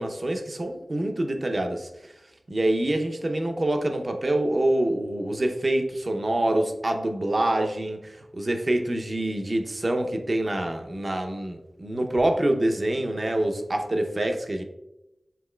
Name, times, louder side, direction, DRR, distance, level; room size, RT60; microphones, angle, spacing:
voice 1, 0.0-1.9 2.5-14.6, right 1 dB, 45° right, 4 dB, 0.5 m, -26 dB
6.9 x 3.0 x 2.2 m, 0.92 s
wide cardioid pair, 75°, 0 cm